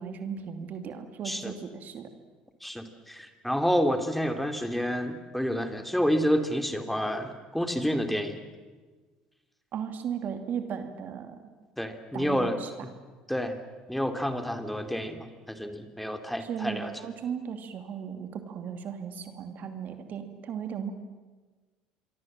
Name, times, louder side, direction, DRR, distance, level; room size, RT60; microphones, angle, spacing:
voice 1, 0.0-2.1 9.7-11.4 12.1-12.7 16.4-20.9, right 7 dB, 55° right, 7 dB, 2.6 m, -36 dB
voice 2, 2.6-8.4 11.8-12.6 13.3-13.6 13.9-16.9, equal, 5° left, 7 dB, 2.8 m, -29 dB
26.5 x 23.5 x 7.5 m, 1.3 s
hypercardioid pair, 70°, 4 cm